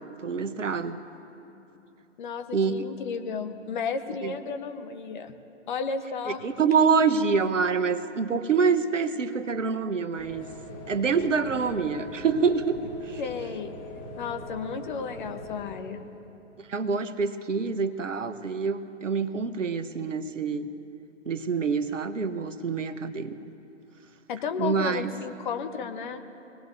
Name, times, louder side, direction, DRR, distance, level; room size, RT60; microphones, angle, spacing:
voice 1, 0.2-1.0 2.5-2.8 4.2-4.3 6.3-10.5 10.9-13.2 16.7-20.7 21.3-23.4 24.6-25.1, right 5 dB, 80° right, 11 dB, 1.0 m, -26 dB
voice 2, 2.2-5.3 5.7-6.4 13.2-13.7 14.2-16.0 24.3-26.2, left 5 dB, 40° left, 8 dB, 1.1 m, -33 dB
sound 1, 10.2-15.8, left 1 dB, 20° left, 4.4 m, -41 dB
24.0 x 18.5 x 2.7 m, 3.0 s
figure-of-eight pair, 130°, 37 cm